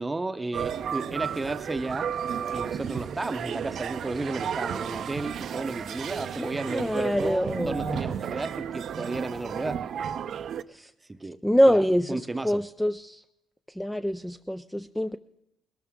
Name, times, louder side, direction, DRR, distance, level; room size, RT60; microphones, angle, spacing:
voice 1, 0.0-2.1 2.5-9.8 11.1-11.4 11.7-11.8 12.1-12.6, right 2 dB, 20° right, 11 dB, 0.8 m, -33 dB
sound 1, 0.5-10.6, right 8 dB, 65° right, 0.6 m, -33 dB
voice 2, 6.4-8.0 10.7-10.9 11.4-13.2 13.8-15.2, equal, 5° left, 9 dB, 0.4 m, -25 dB
20.0 x 13.0 x 3.7 m, 0.84 s
cardioid pair, 90°, 0 cm